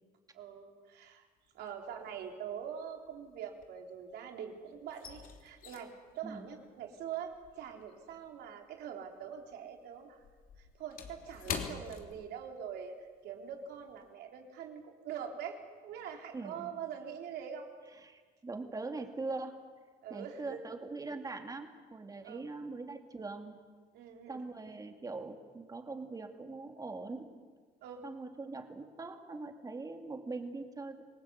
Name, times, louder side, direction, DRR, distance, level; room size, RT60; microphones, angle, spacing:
voice 1, 0.3-1.3 1.5-10.2 10.6-12.9 13.2-15.6 15.8-17.7 20.0-20.6 22.2-22.4 23.9-24.4 27.8-28.0, right 8 dB, 75° right, 2 dB, 3.7 m, -44 dB
sound 1, 1.5-2.0 2.3-4.3 4.5-9.2 9.5-12.8 13.1-13.3 13.8-14.1, left 6 dB, 55° left, 3.1 m, -46 dB
voice 2, 16.3-16.8 18.0-19.6 20.1-23.5 24.3-27.3 28.0-31.0, right 3 dB, 20° right, 4 dB, 2.8 m, -42 dB
27.0 x 19.0 x 8.2 m, 1.5 s
cardioid pair, 110°, 17 cm